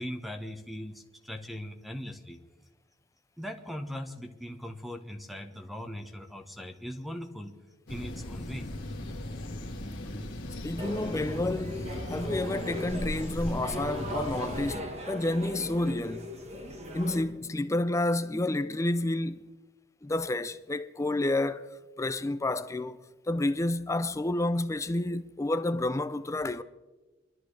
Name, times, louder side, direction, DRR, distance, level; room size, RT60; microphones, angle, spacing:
voice 1, 0.0-2.4 3.4-7.5 7.9-8.7, equal, ahead, 1.0 m, -39 dB
sound 1, 7.9-14.8, left 1 dB, 60° left, 1.9 m, -38 dB
voice 2, 10.6-16.3 16.9-19.5 20.0-26.6, left 2 dB, 15° left, 0.4 m, -30 dB
sound 2, 10.8-17.2, equal, 30° right, 1.3 m, -39 dB
23.0 x 12.5 x 3.3 m
head